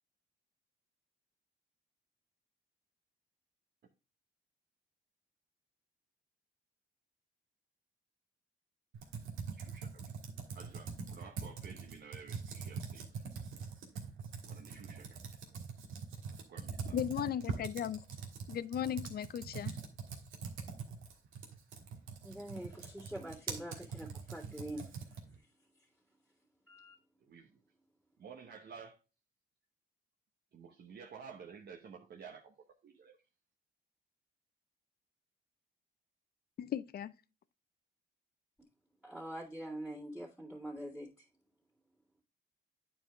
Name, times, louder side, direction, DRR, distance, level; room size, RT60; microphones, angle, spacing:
Computer keyboard, 8.9-25.4, right 5 dB, 90° right, 1.5 m, -43 dB
voice 1, 9.5-10.3 10.5-13.2 14.5-15.6 16.5-17.0 27.2-27.6 28.2-29.0 30.5-32.5 32.8-33.2, right 6 dB, 55° right, 0.9 m, -52 dB
voice 2, 16.9-18.0 18.5-19.8 36.6-37.1, left 10 dB, 50° left, 0.5 m, -36 dB
voice 3, 22.2-25.5 26.7-27.0 39.0-41.3, right 1 dB, 5° right, 2.2 m, -45 dB
8.9 x 4.7 x 3.4 m
cardioid pair, 90°, 20 cm